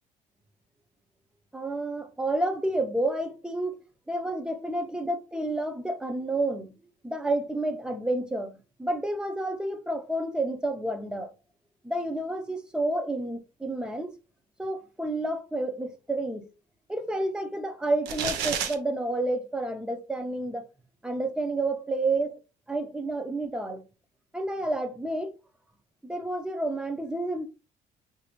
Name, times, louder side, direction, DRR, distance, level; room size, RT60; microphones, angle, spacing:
voice 1, 1.5-3.8 4.1-6.8 7.0-11.3 11.8-14.1 14.6-16.4 16.9-20.6 21.0-22.4 22.7-23.8 24.3-25.3 26.0-27.5, right 2 dB, 5° right, 0.6 m, -30 dB
sound 1, 18.1-18.7, right 7 dB, 85° right, 0.7 m, -29 dB
3.9 x 2.6 x 2.9 m
cardioid pair, 110°, 17 cm